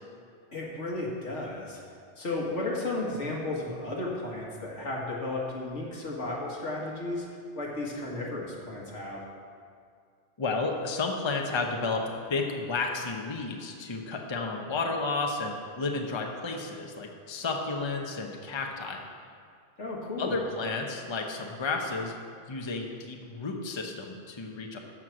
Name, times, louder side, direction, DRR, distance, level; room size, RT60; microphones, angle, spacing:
voice 1, 0.5-1.8 2.2-9.2 19.8-20.4, left 2 dB, 80° left, -3 dB, 2.0 m, -34 dB
voice 2, 10.4-19.0 20.2-22.1 22.5-24.8, left 3 dB, 25° left, 2 dB, 0.8 m, -32 dB
13.5 x 4.6 x 6.3 m, 2.2 s
omnidirectional pair, 1.2 m